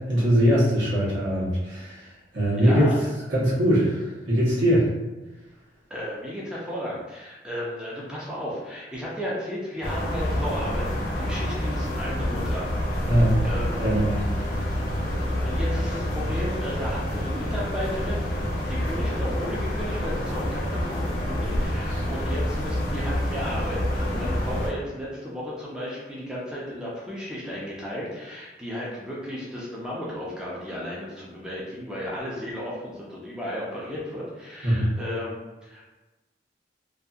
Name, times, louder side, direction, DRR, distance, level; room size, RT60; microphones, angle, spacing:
voice 1, 0.0-2.9 3.3-4.9 13.1-13.4 13.8-14.2 21.9-22.1 34.6-34.9, equal, 85° right, -7 dB, 1.1 m, -22 dB
voice 2, 2.6-3.0 5.9-13.8 15.2-36.0, equal, 5° right, -6 dB, 0.5 m, -34 dB
sound 1, 9.8-24.7, equal, 55° left, 0.7 m, -27 dB
2.6 x 2.6 x 2.4 m, 1.1 s
head